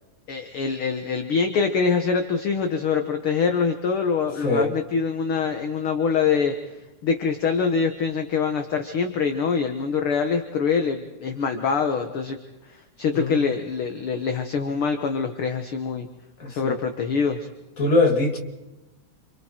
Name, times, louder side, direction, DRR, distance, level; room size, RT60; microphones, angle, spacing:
voice 1, 0.3-6.5 7.0-12.4 12.7-16.1 16.5-17.5, left 5 dB, 55° left, 2.0 m, -24 dB
voice 2, 4.4-4.7 13.1-13.4 16.4-16.8 17.8-18.4, left 2 dB, 30° left, 2.8 m, -22 dB
29.0 x 27.0 x 4.6 m
omnidirectional pair, 3.5 m